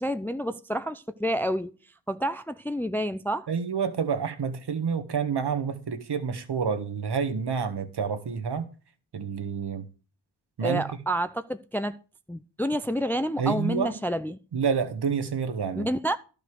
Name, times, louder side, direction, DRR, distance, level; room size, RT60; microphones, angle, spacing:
voice 1, 0.0-1.7 2.1-3.5 10.6-12.0 12.3-14.4 15.8-16.2, equal, 5° left, 0.5 m, -29 dB
voice 2, 3.5-8.7 9.1-9.9 10.6-10.8 13.4-14.0 14.5-15.9, right 6 dB, 55° right, 1.5 m, -28 dB
11.5 x 5.3 x 6.4 m
supercardioid pair, 40°, 47 cm